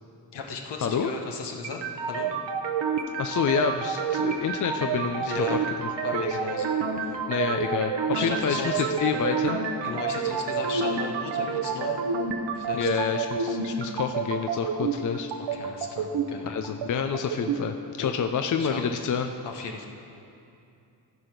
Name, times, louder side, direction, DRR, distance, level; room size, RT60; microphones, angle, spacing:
voice 1, 0.3-1.8 2.1-2.3 5.2-5.6 6.0-7.2 8.1-8.8 9.8-12.0 12.5-12.9 15.5-16.6 18.0-18.1 18.6-18.8 19.4-19.9, left 5 dB, 70° left, 2 dB, 1.3 m, -36 dB
sound 1, 1.6-17.6, right 5 dB, 80° right, 1.0 m, -29 dB
voice 2, 3.2-6.4 7.3-9.6 12.7-15.3 16.4-19.3, left 6 dB, 45° left, 6 dB, 0.6 m, -28 dB
14.5 x 5.1 x 6.0 m, 2.6 s
cardioid pair, 75°, 43 cm